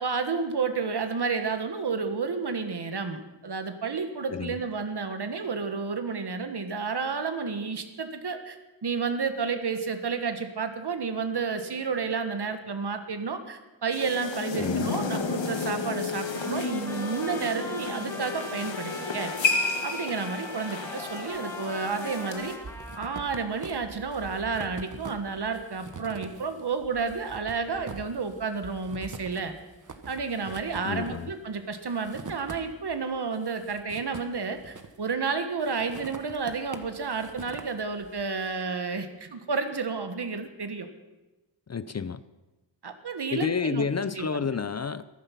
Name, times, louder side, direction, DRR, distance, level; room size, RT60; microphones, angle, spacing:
voice 1, 0.0-19.3 19.8-22.6 23.0-29.6 30.1-40.9 42.8-43.9 44.1-44.5, right 5 dB, 60° right, 8 dB, 1.5 m, -31 dB
sound 1, 13.9-22.6, left 4 dB, 80° left, 1.5 m, -32 dB
voice 2, 14.5-14.9 30.8-31.3 41.7-42.2 43.3-45.0, left 5 dB, 35° left, 15 dB, 0.5 m, -30 dB
Trumpet, 16.2-23.7, left 1 dB, 5° left, 1.7 m, -41 dB
sound 2, 21.3-21.9 22.2-33.0 33.3-35.2 35.6-38.3, right 4 dB, 45° right, 1.2 m, -44 dB
14.5 x 11.0 x 5.8 m, 1.1 s
wide cardioid pair, 70°, 44 cm